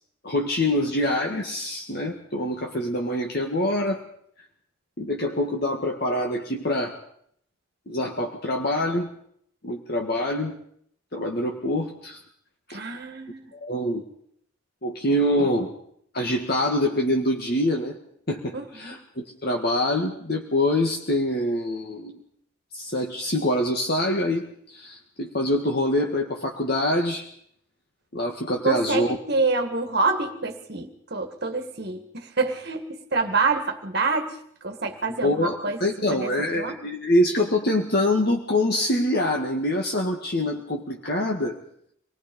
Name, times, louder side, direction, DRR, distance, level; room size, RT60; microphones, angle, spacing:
voice 1, 0.2-4.0 5.0-7.0 7.9-9.1 9.6-10.6 11.1-12.2 12.7-12.8 13.5-14.0 14.8-15.8 16.1-18.0 18.3-22.2 22.7-27.3 28.1-29.2 35.2-41.6, left 1 dB, 45° left, 1 dB, 1.9 m, -25 dB
voice 2, 12.7-13.5 18.5-19.0 28.6-35.8 36.1-36.8, right 3 dB, 50° right, 5 dB, 1.8 m, -27 dB
26.5 x 19.5 x 5.4 m, 0.68 s
head